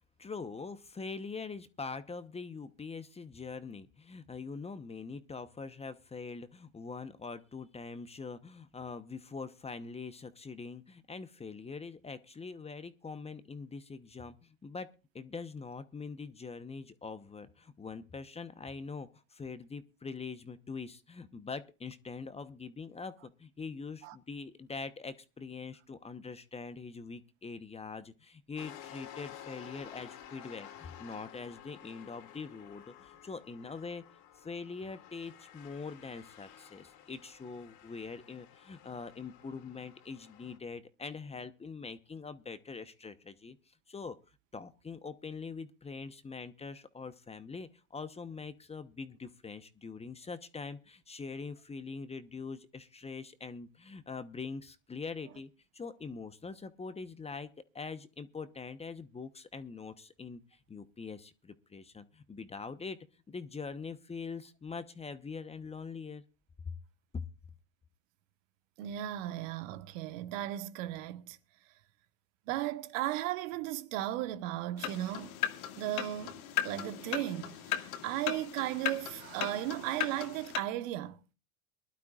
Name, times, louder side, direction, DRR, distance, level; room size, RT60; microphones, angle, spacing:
voice 1, 0.2-14.9 15.1-34.0 34.4-43.6 43.9-44.2 44.5-57.5 57.7-63.0 63.3-66.2 67.1-67.2, left 4 dB, 15° left, 1.0 m, -43 dB
sound 1, 28.6-40.6, left 10 dB, 55° left, 3.0 m, -52 dB
voice 2, 68.8-71.4 72.5-75.4 75.8-81.3, right 14 dB, 65° right, 1.3 m, -36 dB
sound 2, 74.8-80.6, left 11 dB, 75° left, 2.2 m, -37 dB
23.5 x 12.0 x 2.4 m
hypercardioid pair, 105°, 42 cm